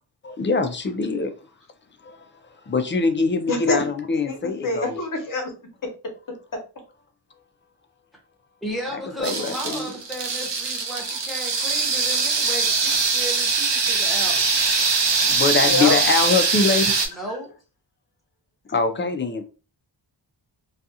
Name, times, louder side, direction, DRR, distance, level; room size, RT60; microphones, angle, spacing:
voice 1, 0.2-1.3 2.0-2.3 2.7-5.0 8.9-9.9 15.3-17.0 18.7-19.5, left 4 dB, 30° left, 0.4 m, -23 dB
voice 2, 4.6-5.5 15.6-15.9, left 2 dB, 50° left, 0.9 m, -24 dB
voice 3, 8.6-14.5 17.1-17.5, right 1 dB, ahead, 1.0 m, -34 dB
sound 1, 9.2-17.1, right 4 dB, 75° right, 0.7 m, -22 dB
2.4 x 2.4 x 2.7 m
wide cardioid pair, 105°, 43 cm